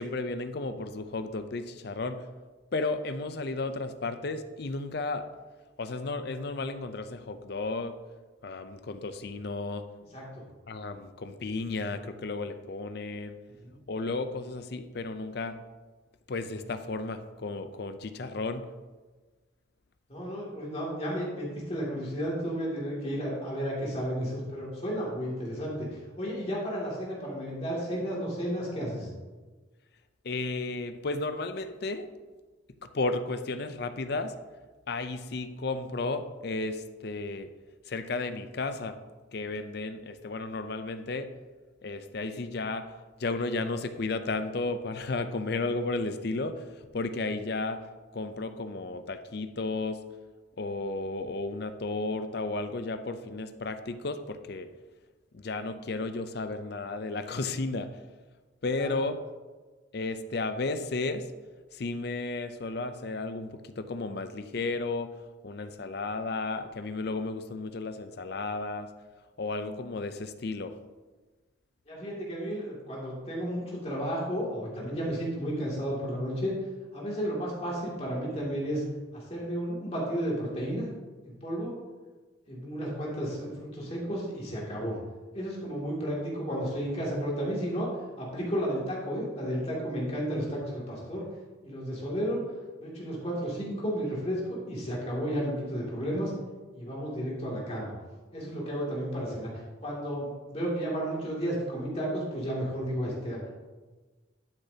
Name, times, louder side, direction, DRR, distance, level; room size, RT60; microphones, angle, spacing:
voice 1, 0.0-2.2 2.7-5.3 5.8-7.9 8.4-9.8 10.7-13.4 13.9-15.6 16.3-18.6 30.2-32.1 32.9-34.3 34.9-37.5 37.9-39.0 39.3-41.3 41.8-42.9 43.2-46.6 46.9-47.9 48.1-50.0 50.6-54.7 55.3-57.9 58.6-59.2 59.9-61.2 61.7-65.1 65.4-68.9 69.4-70.7, left 3 dB, 55° left, 10 dB, 0.5 m, -33 dB
voice 2, 13.5-13.8 20.1-25.9 26.2-29.1 58.7-59.0 71.9-76.5 76.9-78.8 79.1-80.9 81.2-81.7 82.5-85.0 85.3-87.9 88.2-91.3 91.6-92.4 92.8-96.3 96.7-97.9 98.3-99.5 99.8-103.6, equal, 30° left, -5 dB, 2.5 m, -32 dB
11.5 x 6.6 x 2.8 m, 1.3 s
head